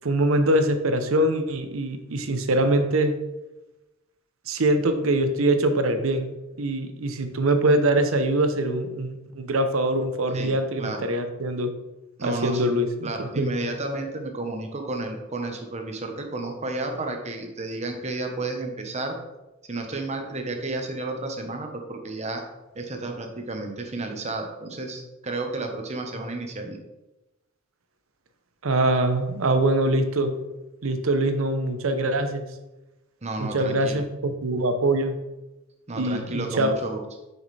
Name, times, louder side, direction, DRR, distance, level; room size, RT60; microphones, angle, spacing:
voice 1, 0.0-3.2 4.5-11.7 12.2-13.5 28.6-30.4 30.8-32.4 33.4-35.2 36.0-36.8, right 1 dB, 85° right, 8 dB, 0.8 m, -23 dB
voice 2, 10.3-11.0 12.2-12.7 13.0-19.2 19.7-22.4 22.7-26.8 33.2-34.0 35.9-37.0, right 2 dB, 35° right, 3 dB, 1.0 m, -32 dB
6.6 x 6.4 x 3.3 m, 1.0 s
head